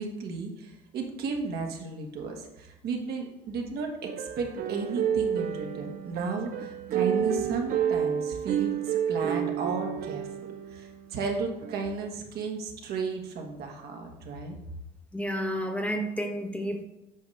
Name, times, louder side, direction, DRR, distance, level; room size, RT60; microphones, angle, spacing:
voice 1, 0.0-14.6, right 4 dB, 70° right, 2 dB, 1.3 m, -34 dB
sound 1, 4.1-11.0 11.6-11.9, right 9 dB, 55° right, 0.5 m, -30 dB
voice 2, 15.1-16.8, equal, 10° left, 3 dB, 0.8 m, -31 dB
8.1 x 5.0 x 3.2 m, 0.96 s
cardioid pair, 110°, 17 cm